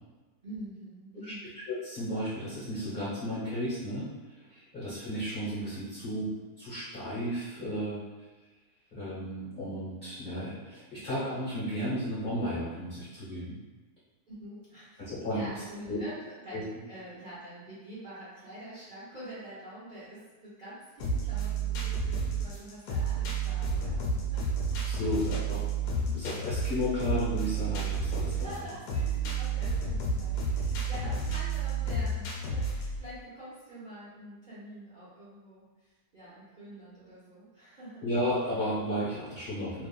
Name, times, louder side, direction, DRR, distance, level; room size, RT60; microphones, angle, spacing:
voice 1, 0.4-1.4 14.3-24.0 24.3-25.4 26.0-26.2 28.3-38.0, right 1 dB, 40° right, -12 dB, 0.8 m, -46 dB
voice 2, 1.7-6.3 6.6-8.0 8.9-13.5 15.0-15.5 15.9-16.0 16.5-16.6 24.8-25.6 26.1-28.6 38.0-39.9, equal, 40° left, -10 dB, 1.0 m, -33 dB
sound 1, 21.0-33.0, right 3 dB, 70° left, 1.0 m, -31 dB
2.8 x 2.4 x 2.3 m, 1.3 s
omnidirectional pair, 1.7 m